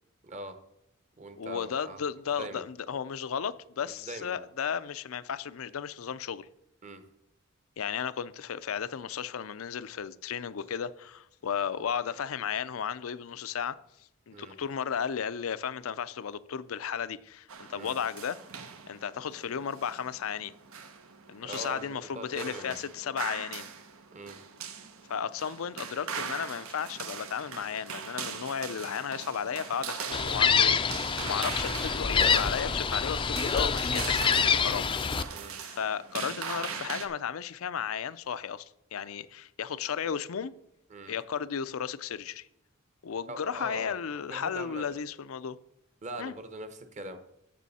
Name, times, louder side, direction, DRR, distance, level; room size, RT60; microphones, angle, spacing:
voice 1, 0.2-0.6 1.2-2.0 2.4-2.6 4.0-4.4 6.8-7.0 14.3-14.6 17.7-18.0 21.4-22.8 24.1-24.4 35.3-35.6 40.9-41.1 43.3-44.8 46.0-47.2, right 1 dB, 35° right, 0.9 m, -42 dB
voice 2, 1.4-6.5 7.8-13.8 14.3-18.4 18.9-20.5 21.3-23.7 25.1-35.4 35.6-40.5 41.1-42.5 43.0-45.6 46.2-46.3, left 7 dB, 80° left, 0.5 m, -34 dB
sound 1, 17.5-37.1, right 6 dB, 85° right, 1.0 m, -41 dB
Gull seagull, 30.1-35.2, left 6 dB, 25° left, 0.4 m, -26 dB
13.5 x 6.1 x 4.2 m
head